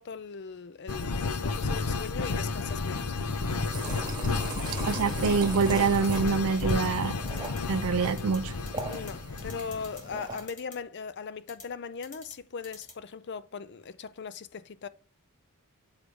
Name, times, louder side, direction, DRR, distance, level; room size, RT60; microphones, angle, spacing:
voice 1, 0.0-3.2 8.9-14.9, left 5 dB, 50° left, 0.5 m, -39 dB
sound 1, 0.9-10.2, left 3 dB, 85° left, 0.7 m, -32 dB
sound 2, 3.3-10.5, right 2 dB, 20° right, 1.7 m, -40 dB
voice 2, 4.8-7.1 7.7-8.5, right 5 dB, 75° right, 0.4 m, -25 dB
sound 3, 5.6-6.3 6.6-6.7 7.3-7.6 8.2-8.4 8.7-9.1 9.4-10.0 10.4-10.8 11.5-11.6 12.0-12.3 12.6-12.9, left 3 dB, 35° left, 2.8 m, -46 dB
6.8 x 4.8 x 4.9 m
head